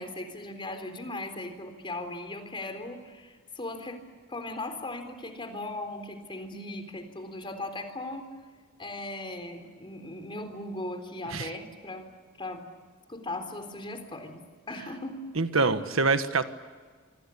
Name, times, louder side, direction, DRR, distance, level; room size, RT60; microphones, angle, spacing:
voice 1, 0.0-4.0 4.3-8.3 8.8-12.1 12.4-12.6 13.1-15.2 15.6-15.9, left 2 dB, 25° left, 7 dB, 3.9 m, -38 dB
voice 2, 15.4-16.4, right 3 dB, 70° right, 10 dB, 1.5 m, -25 dB
26.5 x 25.5 x 8.5 m, 1.5 s
head